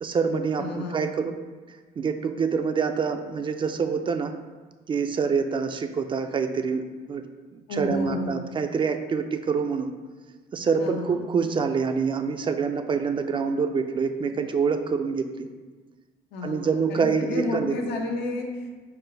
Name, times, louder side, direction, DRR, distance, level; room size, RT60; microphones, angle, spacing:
voice 1, 0.0-1.4 2.0-4.3 4.9-7.2 7.5-9.9 10.5-15.5 16.4-17.8, right 5 dB, 30° right, 7 dB, 0.3 m, -26 dB
voice 2, 0.6-1.1 7.7-8.4 10.8-11.2 16.3-18.7, left 2 dB, 80° left, 1 dB, 0.8 m, -31 dB
4.5 x 2.4 x 4.9 m, 1.4 s
cardioid pair, 110°, 17 cm